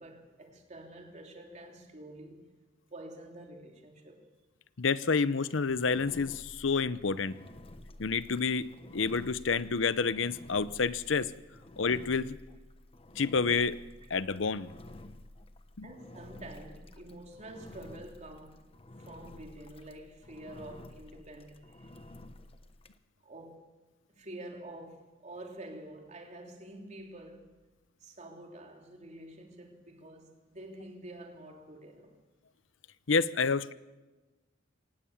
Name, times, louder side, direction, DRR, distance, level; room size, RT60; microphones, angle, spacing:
voice 1, 0.0-2.5 2.9-4.2 14.0-14.1 15.8-18.6 19.0-22.0 23.2-23.6 24.1-27.5 28.0-32.2, right 1 dB, 35° right, 3.4 m, -48 dB
voice 2, 4.8-7.4 8.0-8.7 8.9-11.3 11.8-12.4 13.2-13.8 14.1-14.7 15.8-15.9 33.1-33.7, left 5 dB, 75° left, 0.8 m, -29 dB
Engine, 5.7-23.0, left 1 dB, 30° left, 1.1 m, -51 dB
24.0 x 19.0 x 7.2 m
head